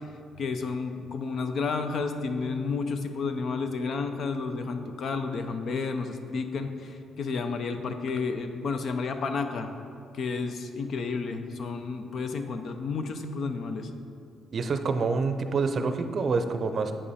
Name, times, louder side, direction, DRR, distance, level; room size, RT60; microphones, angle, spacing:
voice 1, 0.4-9.7 10.1-13.9, left 4 dB, 60° left, 7 dB, 0.6 m, -31 dB
voice 2, 14.5-16.9, right 4 dB, 50° right, 8 dB, 0.5 m, -27 dB
8.5 x 5.4 x 4.2 m, 2.6 s
cardioid pair, 90°, 0 cm